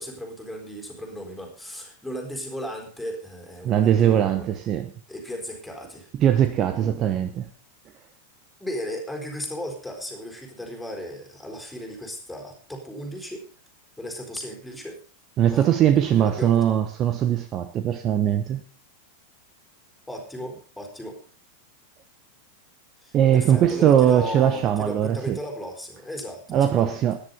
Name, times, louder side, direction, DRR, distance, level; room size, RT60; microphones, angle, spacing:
voice 1, 0.0-4.5 5.1-6.1 8.6-13.4 14.0-15.0 15.5-15.7 16.0-16.6 20.1-21.2 23.0-26.9, equal, 5° left, 2 dB, 4.3 m, -35 dB
voice 2, 3.6-4.9 6.2-7.5 15.4-18.6 23.1-25.4 26.5-27.2, right 10 dB, 30° right, 9 dB, 1.0 m, -20 dB
13.5 x 10.5 x 5.3 m, 0.39 s
figure-of-eight pair, 90°, 0 cm